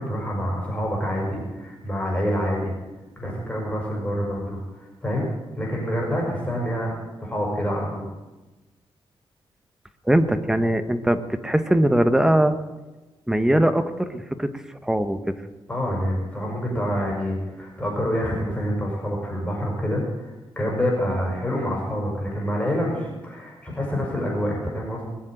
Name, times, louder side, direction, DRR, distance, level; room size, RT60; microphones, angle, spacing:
voice 1, 0.0-2.8 3.2-5.3 5.6-6.9 7.2-8.1 15.7-20.3 20.6-25.1, equal, 15° left, -2 dB, 5.4 m, -27 dB
voice 2, 10.1-12.6 13.3-14.5 14.8-15.3, right 1 dB, 5° right, 9 dB, 1.0 m, -21 dB
20.5 x 7.4 x 9.1 m, 1.1 s
wide cardioid pair, 125°, 10 cm